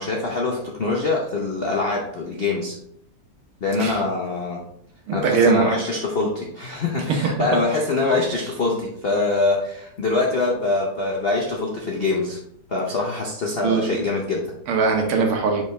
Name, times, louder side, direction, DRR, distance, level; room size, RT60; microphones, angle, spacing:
voice 1, 0.0-2.7 3.6-4.6 5.1-12.4 12.7-14.5, left 3 dB, 80° left, -1 dB, 0.5 m, -24 dB
voice 2, 5.1-5.7 13.6-14.0 14.7-15.6, right 5 dB, 85° right, 3 dB, 1.9 m, -20 dB
5.7 x 4.9 x 3.4 m, 0.72 s
omnidirectional pair, 2.3 m